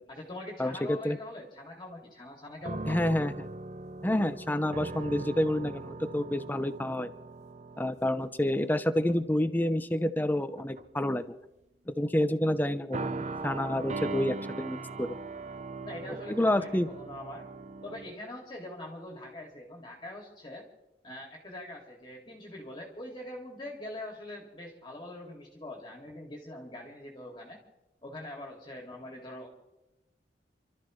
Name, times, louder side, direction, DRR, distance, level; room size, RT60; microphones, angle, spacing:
voice 1, 0.1-3.0 15.8-17.5 17.8-20.7 21.0-27.6 28.0-29.5, left 1 dB, 25° left, -1 dB, 2.4 m, -43 dB
voice 2, 0.6-1.2 2.9-3.5 4.0-7.1 7.8-11.2 11.9-15.1 16.1-16.9, left 1 dB, 10° left, 11 dB, 0.7 m, -28 dB
sound 1, 2.6-8.7 9.1-9.4 10.3-11.1 12.9-18.1, right 3 dB, 40° right, 0.6 m, -40 dB
29.5 x 13.0 x 3.2 m, 0.96 s
head